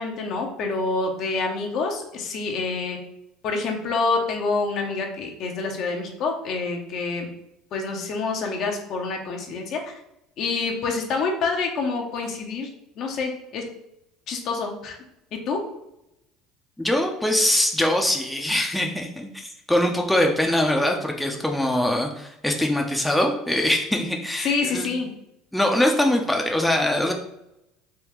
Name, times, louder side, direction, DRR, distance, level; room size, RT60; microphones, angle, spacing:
voice 1, 0.0-3.0 3.4-7.3 7.7-9.9 10.4-12.7 13.0-13.6 14.3-15.0 15.3-15.6 24.4-25.1, left 4 dB, 55° left, 2 dB, 0.8 m, -27 dB
voice 2, 16.8-24.9 25.5-27.1, left 1 dB, 5° left, 1 dB, 0.6 m, -23 dB
3.5 x 3.1 x 3.0 m, 0.84 s
hypercardioid pair, 70°, 0 cm